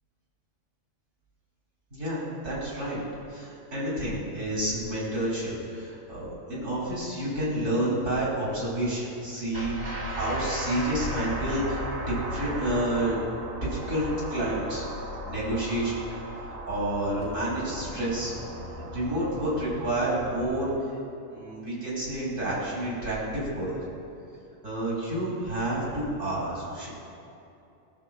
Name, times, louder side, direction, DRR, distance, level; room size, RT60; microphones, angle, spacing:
voice 1, 1.9-3.0 3.3-9.8 10.1-13.2 13.6-14.8 15.2-18.3 18.9-20.7 21.3-23.8 24.6-26.9, right 1 dB, 65° right, -6 dB, 2.9 m, -29 dB
sound 1, 9.5-20.5, right 1 dB, 85° right, 2.8 m, -36 dB
19.0 x 7.0 x 2.3 m, 2.7 s
omnidirectional pair, 1.4 m